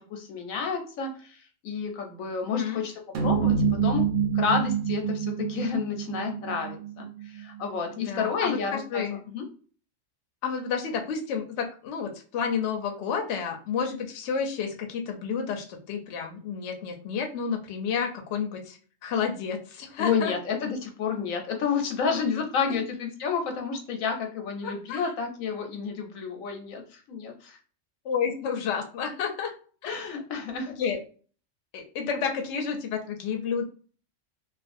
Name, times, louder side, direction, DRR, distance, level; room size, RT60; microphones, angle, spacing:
voice 1, 0.0-1.4 1.6-3.6 3.8-4.1 4.3-9.5 20.0-27.6 29.8-30.7, left 6 dB, 90° left, 4 dB, 1.1 m, -30 dB
voice 2, 2.5-2.8 8.0-9.2 10.4-20.3 22.7-22.8 24.6-25.0 28.0-29.5 29.8-29.9 30.7-31.0 31.7-33.6, left 6 dB, 65° left, 3 dB, 0.8 m, -30 dB
sound 1, 3.1-7.8, right 7 dB, 70° right, 0.9 m, -27 dB
2.4 x 2.3 x 2.5 m, 0.40 s
omnidirectional pair, 1.4 m